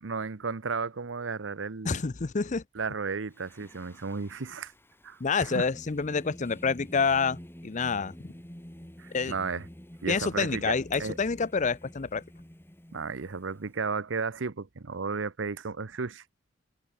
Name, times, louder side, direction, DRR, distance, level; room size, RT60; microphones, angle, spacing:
voice 1, 0.0-2.0 2.7-4.7 5.0-5.7 9.0-9.7 10.0-10.7 11.0-11.2 12.9-16.3, right 4 dB, 80° right, 0.8 m, -34 dB
voice 2, 1.8-2.6 5.2-8.3 9.1-9.3 10.1-12.2, left 5 dB, 40° left, 0.6 m, -28 dB
Singing, 3.3-13.7, equal, 10° left, 1.8 m, -48 dB
head